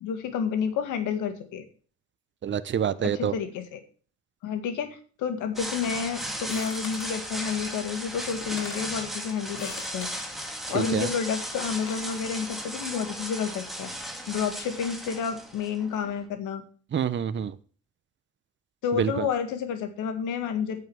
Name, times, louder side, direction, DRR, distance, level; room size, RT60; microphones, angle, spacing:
voice 1, 0.0-1.6 3.0-3.8 4.4-10.1 10.7-13.9 14.3-16.6 18.8-20.9, left 7 dB, 90° left, 1.8 m, -30 dB
voice 2, 2.4-3.3 10.7-11.1 16.9-17.5 18.9-19.3, right 8 dB, 40° right, 0.7 m, -27 dB
sound 1, 5.6-16.2, equal, ahead, 2.2 m, -36 dB
sound 2, 6.5-7.2 8.1-8.2 8.4-8.9 9.5-10.3 11.5-12.1, left 6 dB, 70° left, 2.8 m, -42 dB
8.9 x 5.6 x 7.7 m
cardioid pair, 90°, 30 cm